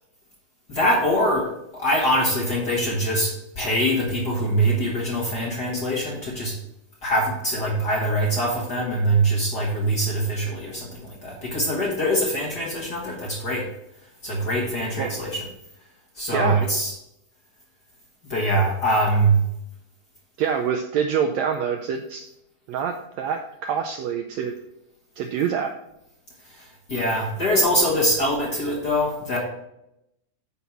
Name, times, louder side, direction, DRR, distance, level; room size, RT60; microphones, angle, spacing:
voice 1, 0.7-6.6 7.0-13.7 14.2-15.5 16.1-16.9 18.3-19.4 26.5-29.4, right 1 dB, 45° left, -2 dB, 1.4 m, -23 dB
voice 2, 16.3-16.6 20.4-22.3 22.7-24.6 25.2-25.8, right 7 dB, 90° right, 6 dB, 1.5 m, -26 dB
9.7 x 5.7 x 4.5 m, 0.83 s
omnidirectional pair, 3.7 m